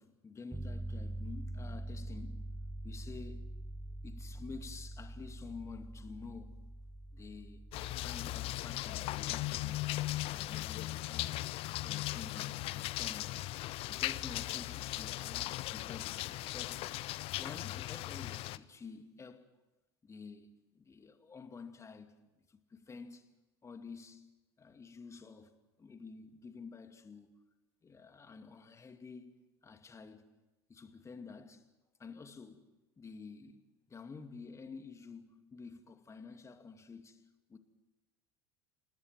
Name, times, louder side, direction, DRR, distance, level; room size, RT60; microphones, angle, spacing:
voice 1, 0.0-2.5 2.8-3.5 4.0-6.6 7.1-7.6 8.0-9.9 10.3-13.4 13.9-16.9 17.3-19.4 20.0-22.2 22.5-23.3 23.6-24.3 24.6-27.3 27.8-30.3 30.7-31.7 32.0-32.7 33.0-33.6 33.9-37.2 37.5-37.6, left 4 dB, 20° left, 2.4 m, -50 dB
sound 1, 0.5-10.6, right 1 dB, 5° right, 1.6 m, -45 dB
sound 2, 7.7-18.6, left 17 dB, 45° left, 0.8 m, -38 dB
28.5 x 19.0 x 7.7 m
figure-of-eight pair, 75°, 13 cm